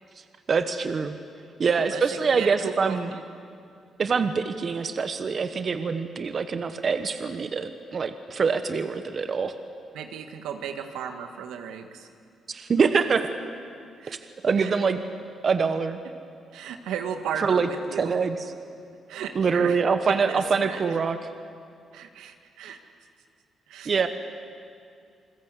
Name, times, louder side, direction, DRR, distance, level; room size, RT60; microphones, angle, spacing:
voice 1, 0.5-1.2 1.6-3.1 4.0-9.5 12.5-13.3 14.1-15.0 15.4-16.0 17.4-18.5 19.3-21.2 23.8-24.1, right 5 dB, 50° right, 9 dB, 1.2 m, -25 dB
voice 2, 2.4-3.2 9.9-12.1 12.9-13.1 14.0-14.1 14.6-14.7 16.5-18.1 19.1-19.8 20.3-20.8 21.9-22.8 23.7-23.9, right 8 dB, 90° right, 6 dB, 1.8 m, -35 dB
28.5 x 21.0 x 8.3 m, 2.4 s
cardioid pair, 70°, 0 cm